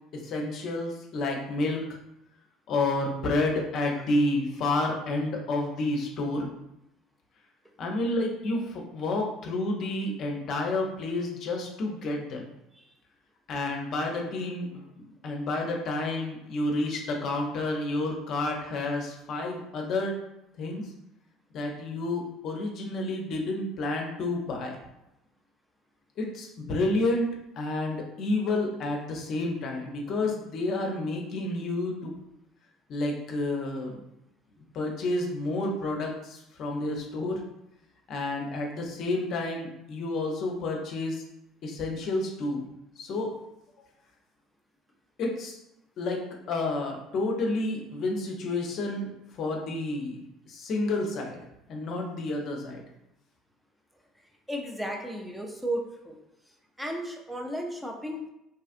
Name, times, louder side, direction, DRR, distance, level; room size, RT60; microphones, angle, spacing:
voice 1, 0.1-1.8 2.7-6.5 7.8-12.5 13.5-20.1 20.6-20.8 21.5-24.8 26.2-27.3 27.6-32.1 32.9-34.0 34.7-37.4 38.1-41.2 41.6-42.6 43.0-43.3 45.2-45.6 46.0-49.1 49.4-50.2 50.5-51.4 51.7-52.8, left 2 dB, 55° left, 1 dB, 0.5 m, -30 dB
voice 2, 54.5-56.2 56.8-58.3, right 1 dB, 5° right, 0 dB, 0.5 m, -34 dB
2.7 x 2.4 x 2.5 m, 0.86 s
hypercardioid pair, 70°, 0 cm